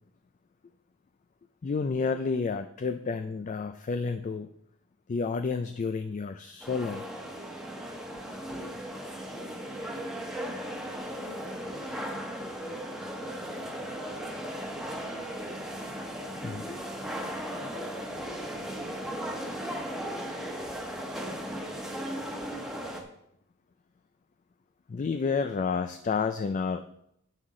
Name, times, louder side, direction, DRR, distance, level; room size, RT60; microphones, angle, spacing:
voice 1, 1.6-4.5 5.1-7.0 13.1-13.7 16.0-16.7 18.6-19.4 24.9-26.9, left 5 dB, 35° left, 9 dB, 0.3 m, -31 dB
sound 1, 6.6-23.0, equal, ahead, 1.1 m, -37 dB
voice 2, 9.2-10.4 10.8-12.8 13.7-15.8 16.6-18.4 19.4-20.8 21.1-23.0, equal, 20° left, 0 dB, 1.9 m, -50 dB
9.8 x 8.0 x 3.7 m, 0.76 s
head